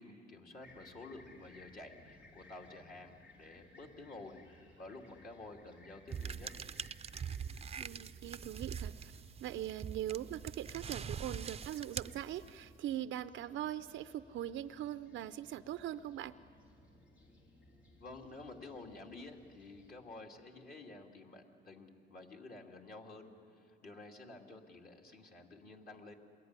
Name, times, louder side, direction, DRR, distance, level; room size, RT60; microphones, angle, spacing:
voice 1, 0.0-6.5 18.0-26.1, left 2 dB, 45° left, 1 dB, 2.8 m, -51 dB
Fixed-wing aircraft airplane, 0.6-20.0, left 2 dB, 75° left, 7.1 m, -62 dB
sound 1, 6.1-12.8, right 7 dB, 30° right, 0.6 m, -43 dB
voice 2, 7.8-9.1 9.4-16.3, right 12 dB, 80° right, 12 dB, 0.6 m, -41 dB
27.0 x 22.0 x 9.7 m, 2.4 s
cardioid pair, 90°, 20 cm